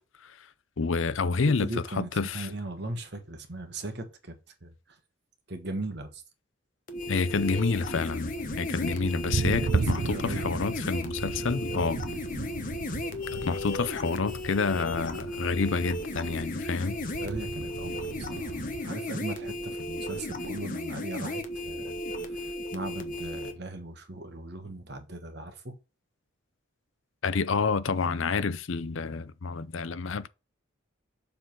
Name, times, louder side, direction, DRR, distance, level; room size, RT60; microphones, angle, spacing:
voice 1, 0.8-2.5 7.1-12.0 13.3-17.0 27.2-30.3, left 4 dB, 70° left, 0.6 m, -29 dB
voice 2, 1.6-4.7 5.5-6.2 10.1-10.4 17.2-22.0 22.4-25.8, right 2 dB, 50° right, 1.4 m, -38 dB
sound 1, 6.9-23.5, left 1 dB, 40° left, 1.0 m, -35 dB
Thunder, 7.3-18.9, right 4 dB, 80° right, 0.6 m, -36 dB
7.0 x 3.8 x 5.9 m
head